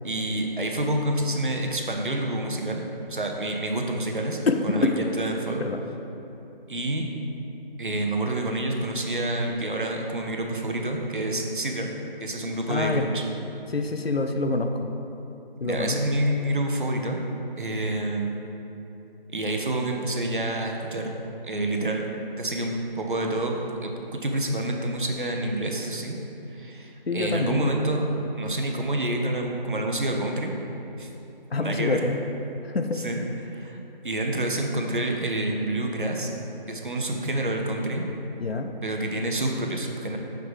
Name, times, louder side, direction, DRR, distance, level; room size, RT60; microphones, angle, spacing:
voice 1, 0.0-5.6 6.7-7.0 7.8-11.9 12.2-13.2 15.6-17.2 17.6-18.4 19.3-21.1 21.4-22.1 22.4-26.1 26.5-28.1 28.4-30.5 31.0-31.1 31.6-32.0 32.9-33.8 34.0-36.3 36.7-38.1 38.8-40.2, right 1 dB, 60° right, 2 dB, 0.7 m, -28 dB
voice 2, 12.7-13.1 13.7-14.7 15.6-16.0 27.1-27.7 31.5-32.2 32.7-33.0 38.4-38.7, left 3 dB, 85° left, 6 dB, 0.6 m, -25 dB
5.9 x 5.1 x 3.3 m, 2.9 s
figure-of-eight pair, 165°, 29 cm